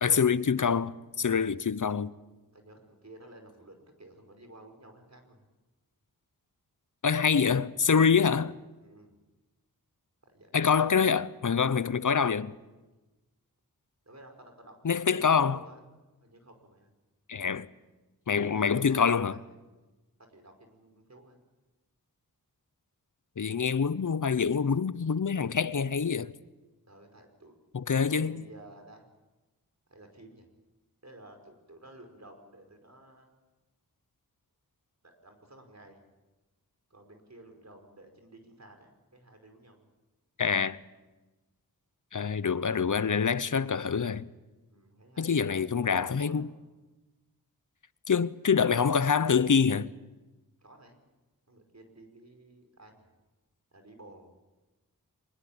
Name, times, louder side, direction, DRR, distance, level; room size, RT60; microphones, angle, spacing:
voice 1, 0.0-2.1 7.0-8.6 10.5-12.5 14.8-15.6 17.3-17.7 18.3-19.4 23.4-26.3 27.7-28.4 40.4-40.8 42.1-44.3 45.2-46.5 48.1-49.9, left 6 dB, 55° left, 0.9 m, -26 dB
voice 2, 2.5-5.4 8.8-9.2 10.2-10.5 14.1-14.8 15.2-15.8 16.2-16.9 18.5-19.9 20.2-21.4 26.9-27.6 27.9-29.0 29.9-30.5 31.0-33.3 35.0-36.0 36.9-39.9 44.7-46.5 50.6-51.0 51.5-53.1 53.7-54.3, right 1 dB, 50° right, 5.2 m, -53 dB
24.0 x 20.5 x 8.8 m
cardioid pair, 40°, 36 cm